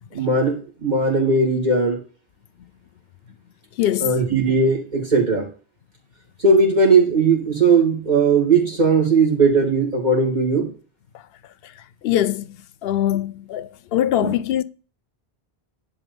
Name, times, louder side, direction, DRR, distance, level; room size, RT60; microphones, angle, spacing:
voice 1, 0.1-2.0 4.0-5.5 6.4-10.7 14.2-14.3, right 3 dB, 45° right, 2.7 m, -18 dB
voice 2, 3.8-4.1 12.0-14.6, left 12 dB, 75° left, 0.8 m, -22 dB
10.5 x 4.2 x 6.8 m
omnidirectional pair, 1.0 m